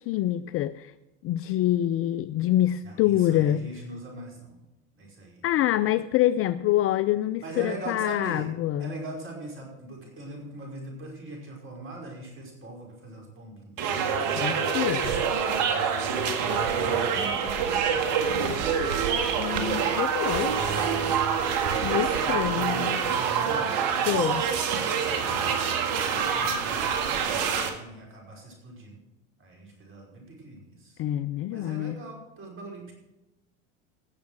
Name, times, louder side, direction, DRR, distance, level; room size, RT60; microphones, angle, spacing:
voice 1, 0.1-0.9 1.2-3.7 5.4-8.9 14.4-15.2 19.4-20.5 21.8-23.0 24.1-24.5 31.0-32.0, left 13 dB, 35° left, 15 dB, 0.4 m, -26 dB
voice 2, 2.8-4.6 5.0-5.5 7.4-8.5 8.8-13.8 15.7-16.2 16.7-19.0 21.6-23.8 25.0-29.0 29.4-31.0 31.5-32.9, right 2 dB, 30° right, -1 dB, 5.3 m, -42 dB
sound 1, 13.8-27.7, right 6 dB, 55° right, 2.0 m, -26 dB
16.5 x 7.0 x 6.3 m, 1.0 s
hypercardioid pair, 90°, 40 cm